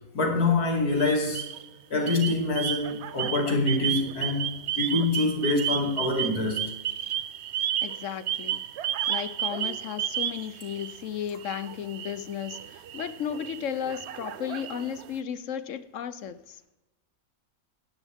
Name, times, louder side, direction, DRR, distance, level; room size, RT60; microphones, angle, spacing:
voice 1, 0.1-1.4 1.9-4.5 4.8-6.6, left 2 dB, 85° left, 1 dB, 3.0 m, -25 dB
sound 1, 0.9-1.7 2.0-11.1 11.4-15.1, right 10 dB, 60° right, 0.7 m, -33 dB
voice 2, 7.8-8.6 9.1-16.6, left 9 dB, 65° left, 13 dB, 1.0 m, -34 dB
17.5 x 11.0 x 3.6 m, 0.98 s
omnidirectional pair, 1.6 m